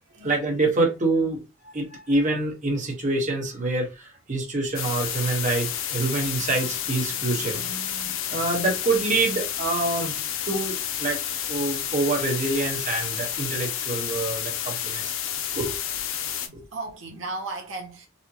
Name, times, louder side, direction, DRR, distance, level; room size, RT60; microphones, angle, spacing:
voice 1, 0.1-10.2 10.4-11.2 11.5-15.1 15.5-15.7 16.5-16.6, right 2 dB, 40° right, 1.1 m, -26 dB
sound 1, 4.7-16.5, left 9 dB, 90° left, 0.6 m, -30 dB
voice 2, 16.7-18.1, right 3 dB, 75° right, 0.7 m, -35 dB
4.2 x 2.1 x 2.8 m
head